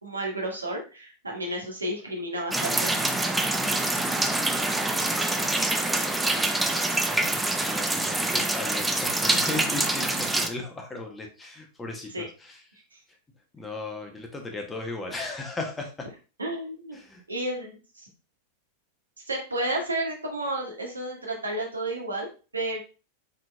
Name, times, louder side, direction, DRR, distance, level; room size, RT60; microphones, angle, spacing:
voice 1, 0.0-2.9 12.1-12.2 16.4-17.0 17.3-18.1 19.3-22.3 22.5-22.8, right 1 dB, 80° right, 0 dB, 1.2 m, -31 dB
sound 1, 2.5-10.5, right 2 dB, 5° right, 0.5 m, -25 dB
voice 2, 6.3-12.6 13.5-16.1 16.9-17.2, left 2 dB, 10° left, 2 dB, 0.9 m, -36 dB
4.4 x 4.2 x 2.3 m, 0.33 s
figure-of-eight pair, 90°, 0 cm